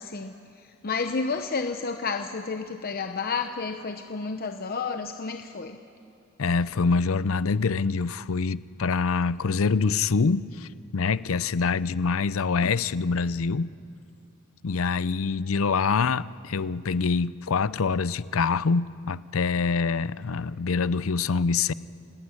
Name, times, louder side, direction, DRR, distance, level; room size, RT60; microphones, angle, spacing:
voice 1, 0.0-5.8, left 4 dB, 45° left, 0.9 m, -31 dB
voice 2, 6.4-13.7 14.6-21.7, left 4 dB, 70° left, 0.6 m, -25 dB
27.0 x 18.0 x 9.7 m
head